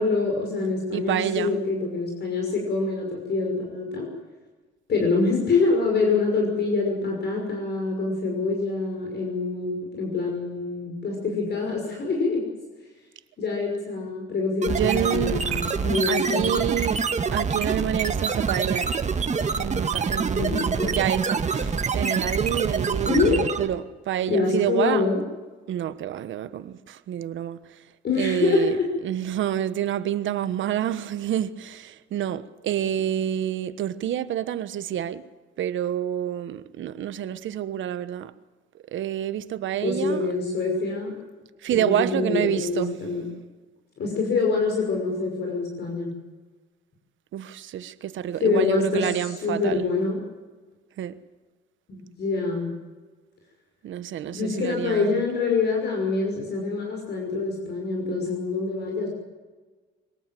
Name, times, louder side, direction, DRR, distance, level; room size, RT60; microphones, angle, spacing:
voice 1, 0.0-4.1 4.9-12.4 13.4-16.7 20.4-21.0 23.0-23.4 24.3-25.2 28.0-28.9 39.8-41.1 41.7-43.2 44.0-46.1 48.4-50.2 51.9-52.7 54.3-59.1, left 3 dB, 60° left, 5.9 m, -25 dB
voice 2, 0.9-1.5 14.7-15.6 16.1-17.0 17.3-19.0 19.6-25.1 25.7-27.8 28.2-28.8 29.0-35.3 35.6-38.3 38.9-40.3 41.6-43.0 47.3-49.9 51.0-51.2 53.8-55.2, right 11 dB, 75° right, 1.2 m, -28 dB
sound 1, 14.6-23.8, right 5 dB, 35° right, 1.8 m, -26 dB
24.0 x 18.5 x 7.7 m
cardioid pair, 90°, 20 cm